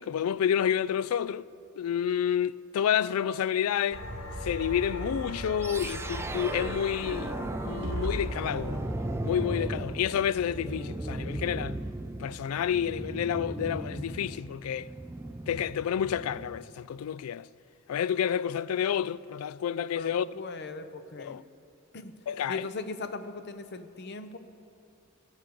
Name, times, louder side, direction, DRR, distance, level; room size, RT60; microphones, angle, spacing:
voice 1, 0.0-1.4 1.8-4.0 4.4-8.8 9.2-11.8 12.2-14.9 15.5-17.5 17.9-20.3 21.2-21.4 22.3-22.7, left 9 dB, 90° left, 0.3 m, -29 dB
sound 1, 3.9-10.5, equal, 70° left, 1.9 m, -39 dB
sound 2, 5.6-16.7, right 1 dB, 10° right, 0.3 m, -37 dB
sound 3, 7.8-11.7, right 1 dB, 60° right, 0.9 m, -40 dB
voice 2, 19.9-21.4 21.9-22.2 22.5-24.4, left 3 dB, 50° left, 0.7 m, -39 dB
16.5 x 8.3 x 6.9 m
head